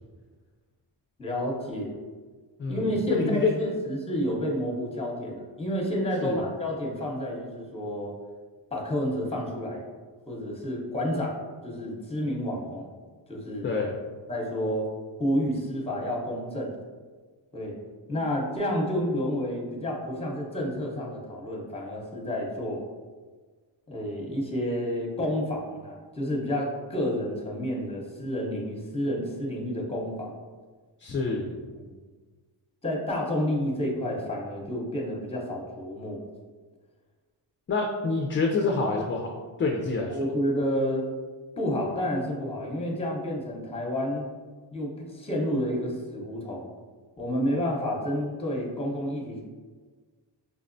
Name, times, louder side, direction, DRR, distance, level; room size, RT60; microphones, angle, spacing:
voice 1, 1.2-1.9 2.7-8.1 8.7-9.8 10.3-11.3 11.6-12.9 13.3-13.7 14.3-14.9 15.2-16.7 17.5-17.8 18.1-22.8 23.9-30.4 31.8-31.9 32.8-36.2 40.1-41.1 41.6-44.3 44.7-46.7 47.2-49.4, equal, 15° left, -2 dB, 0.9 m, -30 dB
voice 2, 2.6-3.5 6.2-6.4 13.6-13.9 31.0-31.5 37.7-40.1, left 3 dB, 30° left, 0 dB, 0.4 m, -27 dB
5.2 x 2.0 x 2.6 m, 1.4 s
cardioid pair, 85°, 44 cm